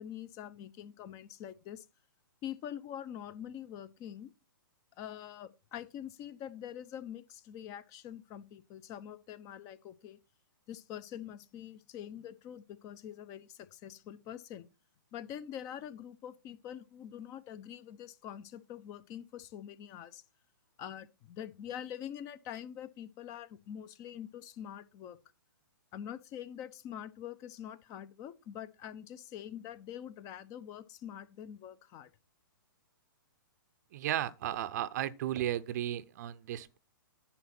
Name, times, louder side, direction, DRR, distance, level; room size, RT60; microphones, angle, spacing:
voice 1, 0.0-1.8 2.4-4.3 5.0-10.2 10.7-14.7 15.1-20.2 20.8-25.2 25.9-32.1, left 10 dB, 30° left, 0.7 m, -45 dB
voice 2, 33.9-36.8, right 12 dB, 50° right, 0.6 m, -34 dB
10.0 x 4.1 x 5.9 m
hypercardioid pair, 125°, 11 cm